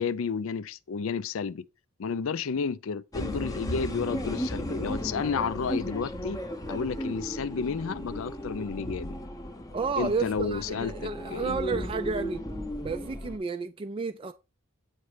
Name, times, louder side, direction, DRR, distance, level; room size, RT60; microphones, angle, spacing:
voice 1, 0.0-1.6 2.0-6.4 6.7-9.1 10.0-11.8, left 5 dB, 70° left, 0.4 m, -31 dB
sound 1, 3.1-13.4, equal, 15° left, 0.8 m, -35 dB
voice 2, 9.7-12.4 12.8-14.3, right 4 dB, 25° right, 0.3 m, -31 dB
9.0 x 3.2 x 5.0 m
head